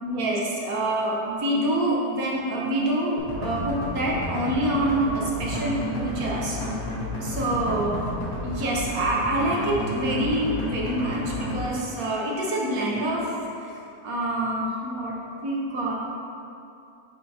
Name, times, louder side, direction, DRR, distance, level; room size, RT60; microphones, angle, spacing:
voice 1, 0.0-6.6 7.2-8.0 8.4-15.9, right 1 dB, 60° right, -4 dB, 1.3 m, -26 dB
sound 1, 3.2-11.7, left 1 dB, 40° left, 1.1 m, -31 dB
9.5 x 3.5 x 2.8 m, 2.6 s
omnidirectional pair, 1.8 m